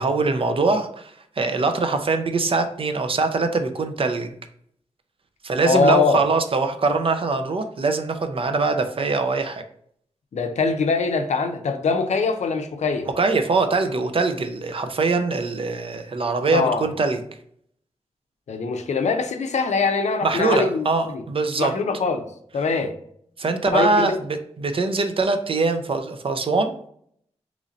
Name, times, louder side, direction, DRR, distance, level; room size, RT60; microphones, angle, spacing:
voice 1, 0.0-4.3 5.4-9.6 13.2-17.2 20.2-21.7 23.4-26.7, right 3 dB, 50° right, 7 dB, 0.5 m, -23 dB
voice 2, 5.6-6.2 10.3-13.1 16.5-16.9 18.5-21.2 21.6-22.3 22.5-22.9 23.7-24.2, left 4 dB, 80° left, 7 dB, 0.5 m, -22 dB
3.1 x 2.6 x 3.9 m, 0.65 s
cardioid pair, 70°, 12 cm